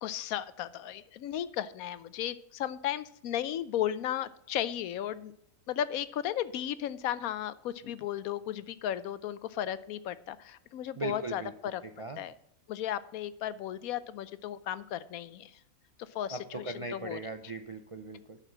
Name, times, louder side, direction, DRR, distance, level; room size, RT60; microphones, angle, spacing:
voice 1, 0.0-5.3 5.7-11.8 12.2-12.3 12.7-15.6 16.1-17.2, left 11 dB, 75° left, 16 dB, 1.0 m, -35 dB
voice 2, 11.0-11.5 11.8-12.2 16.3-18.4, right 2 dB, 55° right, 7 dB, 0.3 m, -39 dB
9.9 x 5.8 x 6.0 m, 0.74 s
omnidirectional pair, 1.6 m